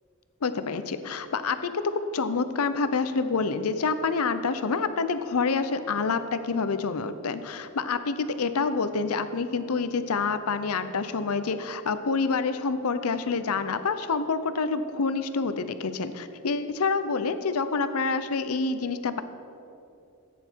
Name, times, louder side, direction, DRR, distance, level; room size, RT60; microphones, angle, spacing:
voice 1, 0.4-1.8 2.1-19.2, left 4 dB, 80° left, 11 dB, 0.6 m, -27 dB
14.5 x 9.1 x 4.6 m, 2.7 s
head